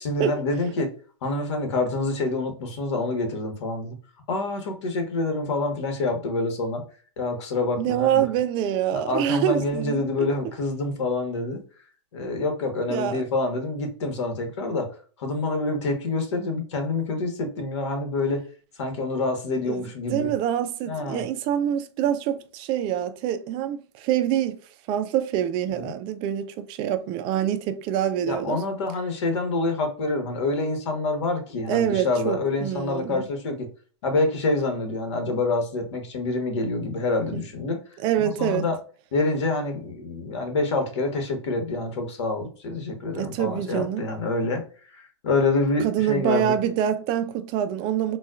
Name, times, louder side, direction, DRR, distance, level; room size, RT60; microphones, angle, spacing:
voice 1, 0.0-0.9 1.2-3.9 4.3-6.8 7.2-8.2 8.9-11.6 12.1-14.9 15.2-18.4 18.8-20.3 20.9-21.2 25.7-25.9 28.3-33.7 34.0-37.8 38.2-38.7 39.1-44.6 44.9-46.5, left 3 dB, 65° left, 1.3 m, -27 dB
voice 2, 7.8-10.3 12.9-13.2 19.6-19.8 20.1-24.6 24.9-28.6 31.7-33.3 37.3-37.4 38.0-38.7 43.2-44.1 45.8-48.2, right 10 dB, 35° right, 0.4 m, -25 dB
4.1 x 2.3 x 2.4 m
hypercardioid pair, 135°, 15 cm